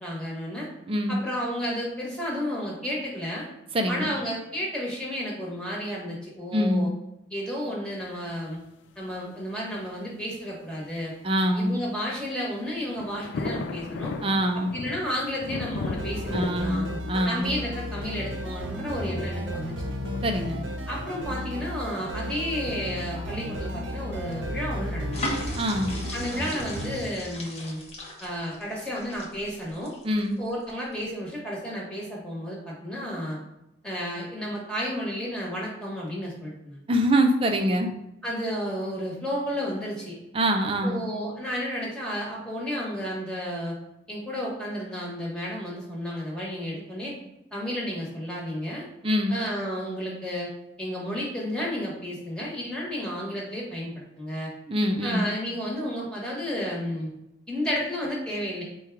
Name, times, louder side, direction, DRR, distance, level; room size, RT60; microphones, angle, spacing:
voice 1, 0.0-0.7 1.1-3.5 3.9-6.9 7.3-8.6 8.9-11.1 11.5-14.1 14.7-16.8 17.2-19.9 20.9-25.2 26.1-27.8 28.2-29.9 30.4-33.4 33.8-36.8 38.2-40.2 40.8-43.7 44.1-47.1 47.5-48.9 49.3-50.5 50.8-54.5 55.0-57.1 57.5-58.6, equal, 5° left, -5 dB, 1.3 m, -32 dB
voice 2, 0.9-1.2 3.7-4.1 6.5-6.9 11.2-11.8 14.2-14.8 16.3-17.5 20.2-20.6 25.6-25.9 30.0-30.4 36.9-37.9 40.3-41.0 49.0-49.4 54.7-55.3, equal, 30° right, 4 dB, 0.5 m, -24 dB
sound 1, 8.0-8.1 8.5-8.6 9.2-9.3 9.5-9.6 10.7-11.0 11.8-12.2 12.5-12.6 12.9-26.5, left 3 dB, 80° left, 0.3 m, -39 dB
sound 2, 16.0-27.0, equal, 85° right, 0.7 m, -34 dB
sound 3, 25.1-30.5 30.9-31.1, left 1 dB, 35° left, 0.8 m, -37 dB
4.5 x 2.3 x 4.7 m, 0.87 s
head